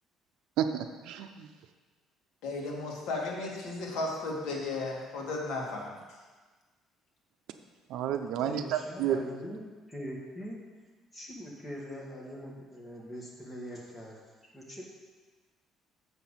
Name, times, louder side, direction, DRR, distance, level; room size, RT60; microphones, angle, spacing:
voice 1, 0.6-1.5 7.9-9.2, right 9 dB, 75° right, 8 dB, 0.6 m, -31 dB
voice 2, 2.4-6.0, left 2 dB, 75° left, -2 dB, 2.1 m, -34 dB
voice 3, 8.4-9.6 9.9-10.6 11.1-14.2 14.5-14.8, equal, 15° left, -3 dB, 1.7 m, -42 dB
6.9 x 6.0 x 7.3 m, 1.3 s
cardioid pair, 155°, 0 cm